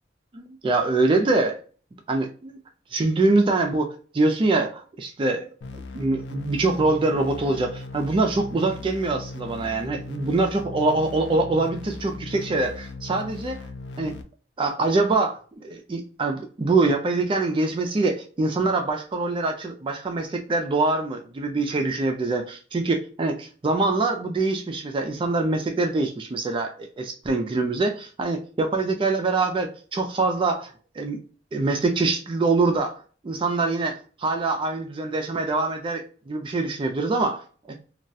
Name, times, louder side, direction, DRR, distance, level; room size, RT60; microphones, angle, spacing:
voice 1, 0.3-1.5 2.1-2.6 2.9-13.7 14.0-14.2 14.6-31.2 31.5-37.4, right 3 dB, 25° right, 4 dB, 0.3 m, -24 dB
sound 1, 5.6-14.2, left 3 dB, 70° left, 0.4 m, -38 dB
2.3 x 2.1 x 2.6 m, 0.39 s
head